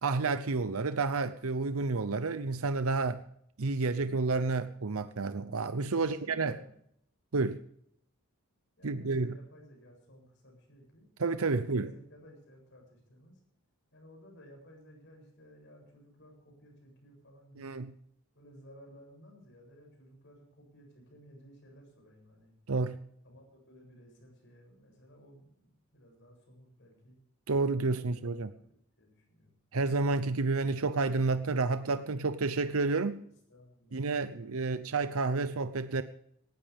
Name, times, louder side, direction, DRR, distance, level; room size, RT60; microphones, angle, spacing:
voice 1, 0.0-3.2 3.6-6.6 7.3-7.6 8.8-9.3 11.2-11.9 17.6-17.9 22.7-23.0 27.5-28.5 29.7-33.2 33.9-36.0, right 3 dB, 75° right, 0.8 m, -30 dB
voice 2, 6.0-6.8 8.8-11.1 11.6-13.4 13.9-17.8 18.3-22.5 23.2-27.2 27.8-29.6 33.5-35.6, equal, 55° left, 7.5 m, -57 dB
19.0 x 14.5 x 3.6 m
head